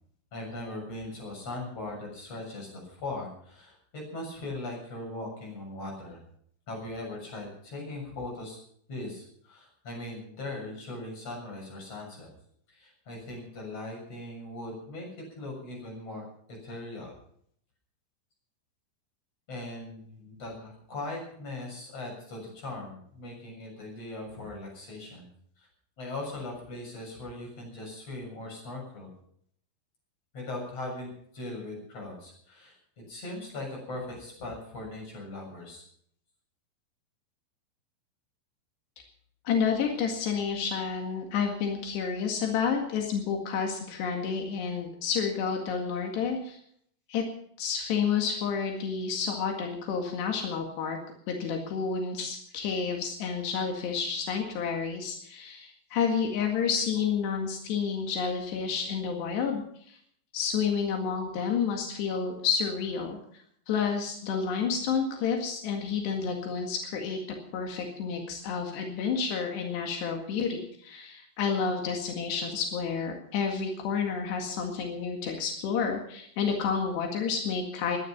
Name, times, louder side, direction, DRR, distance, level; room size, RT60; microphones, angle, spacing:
voice 1, 0.3-6.2 6.7-8.6 8.9-12.3 12.7-17.1 19.5-25.3 25.6-25.7 26.0-29.1 30.3-35.8, left 2 dB, 35° left, 0 dB, 7.9 m, -39 dB
voice 2, 39.5-46.6 47.1-47.2 47.6-51.0 51.3-59.6 59.9-60.0 60.3-63.2 63.7-67.2 67.5-78.0, left 6 dB, 85° left, 2 dB, 4.2 m, -30 dB
22.0 x 10.5 x 6.0 m, 0.65 s
omnidirectional pair, 4.7 m